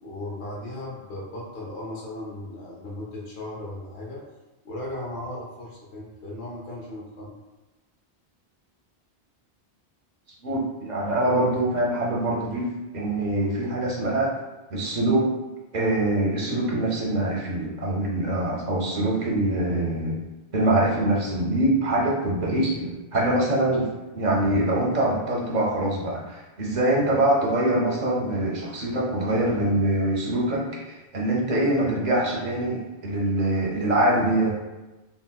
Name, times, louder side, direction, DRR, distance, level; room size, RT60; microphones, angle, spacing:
voice 1, 0.0-4.2 4.6-7.3, left 1 dB, 70° left, -5 dB, 0.9 m, -36 dB
voice 2, 10.4-14.3 14.7-15.3 15.7-20.2 20.5-23.9 24.1-34.6, right 1 dB, 50° right, -3 dB, 0.6 m, -24 dB
3.7 x 2.1 x 2.2 m, 1.1 s
omnidirectional pair, 1.1 m